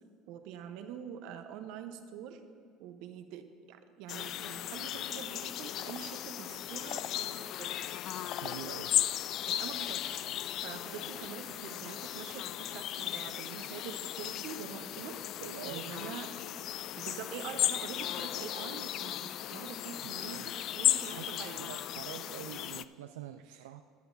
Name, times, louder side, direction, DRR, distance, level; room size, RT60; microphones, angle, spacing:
voice 1, 0.3-2.4 2.8-7.9 9.5-10.3 10.6-15.2 15.6-16.3 16.9-21.7 23.5-23.6, right 8 dB, 70° right, 8 dB, 0.9 m, -45 dB
sound 1, 4.1-22.8, left 12 dB, 55° left, 0.3 m, -36 dB
sound 2, 4.4-11.3, left 4 dB, 35° left, 1.0 m, -61 dB
voice 2, 8.4-8.9 15.4-16.1 20.3-20.7 21.0-23.8, right 11 dB, 90° right, 7 dB, 0.3 m, -46 dB
16.5 x 10.5 x 2.7 m, 2.2 s
hypercardioid pair, 85°, 0 cm